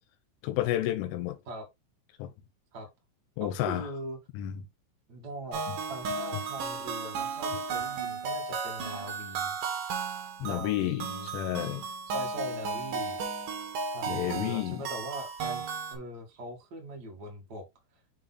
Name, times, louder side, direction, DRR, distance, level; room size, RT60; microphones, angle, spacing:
voice 1, 0.4-1.4 2.2-2.3 3.4-3.9 4.3-4.5 10.4-11.1 11.3-11.8 14.1-14.8, left 13 dB, 85° left, 3.2 m, -30 dB
voice 2, 3.4-4.2 5.1-5.6 5.9-9.5 10.4-11.3 12.1-13.5 13.9-17.6, equal, 90° right, 0.8 m, -41 dB
sound 1, 5.5-16.0, right 5 dB, 60° right, 2.5 m, -34 dB
6.8 x 4.2 x 3.9 m
omnidirectional pair, 5.6 m